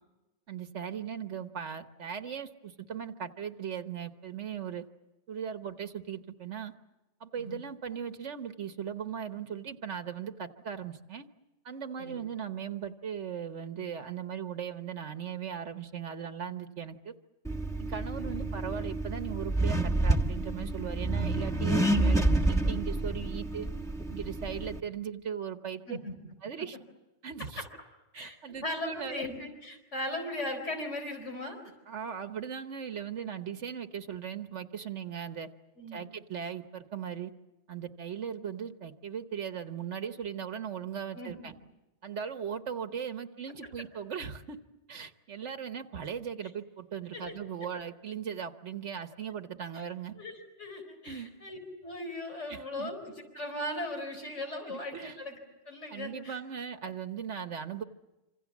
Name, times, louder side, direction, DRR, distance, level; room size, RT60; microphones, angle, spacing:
voice 1, 0.5-4.8 5.3-6.7 7.2-11.3 11.6-17.2 17.8-23.7 24.1-25.8 26.4-26.8 27.2-27.6 28.1-29.3 31.9-35.5 35.9-37.3 37.7-41.5 42.0-44.6 44.9-50.1 51.0-51.3 52.5-52.9 54.7-55.2 55.9-57.8, right 8 dB, 80° right, 8 dB, 1.4 m, -38 dB
Accelerating revving vroom, 17.5-24.8, right 2 dB, 5° left, 1.3 m, -29 dB
voice 2, 28.6-31.6 35.8-36.1 41.1-41.3 47.1-47.3 49.7-49.8 50.1-55.4 55.7-56.4, left 1 dB, 85° left, 5 dB, 4.6 m, -38 dB
27.0 x 26.5 x 7.2 m, 1.0 s
omnidirectional pair, 1.2 m